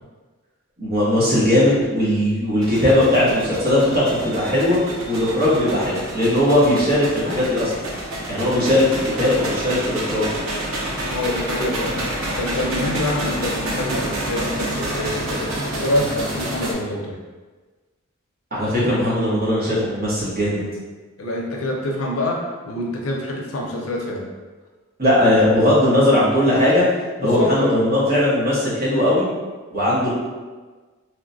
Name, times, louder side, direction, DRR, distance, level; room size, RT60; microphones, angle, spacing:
voice 1, 0.8-4.8 5.1-7.7 8.3-10.3 18.5-20.6 25.0-26.8 27.2-29.3 29.7-30.1, left 1 dB, 45° right, -9 dB, 1.0 m, -18 dB
sound 1, 2.6-16.7, right 1 dB, 75° right, 0.5 m, -28 dB
voice 2, 11.1-12.1 12.4-15.5 15.8-17.2 21.2-24.3 27.2-27.8, left 1 dB, 85° left, 0 dB, 0.5 m, -26 dB
3.0 x 2.1 x 2.6 m, 1.3 s
head